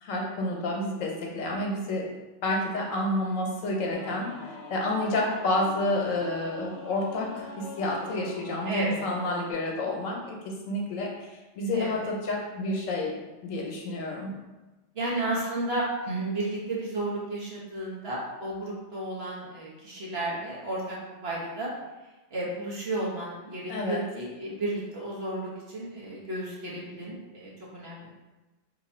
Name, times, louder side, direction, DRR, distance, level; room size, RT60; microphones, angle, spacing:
voice 1, 0.0-2.1 2.4-11.3 11.6-14.3 23.7-24.0, left 1 dB, 85° left, -1 dB, 1.1 m, -29 dB
Singing / Musical instrument, 3.9-9.5, left 2 dB, 60° left, 0.9 m, -43 dB
voice 2, 8.6-9.1 11.7-11.9 14.9-21.0 21.2-21.7 22.3-28.1, right 2 dB, 55° right, -5 dB, 1.1 m, -33 dB
2.9 x 2.7 x 4.2 m, 1.1 s
omnidirectional pair, 1.3 m